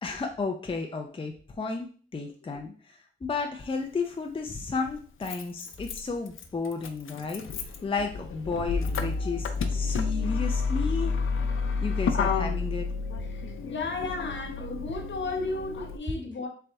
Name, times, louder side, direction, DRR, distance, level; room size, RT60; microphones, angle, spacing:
voice 1, 0.0-11.2 11.8-12.9, left 4 dB, 25° left, 0.5 m, -33 dB
Motor vehicle (road), 3.6-3.7 4.8-16.0, left 4 dB, 80° left, 0.5 m, -30 dB
voice 2, 13.2-16.5, left 3 dB, 65° left, 1.1 m, -34 dB
3.9 x 3.4 x 3.4 m
wide cardioid pair, 90°, 21 cm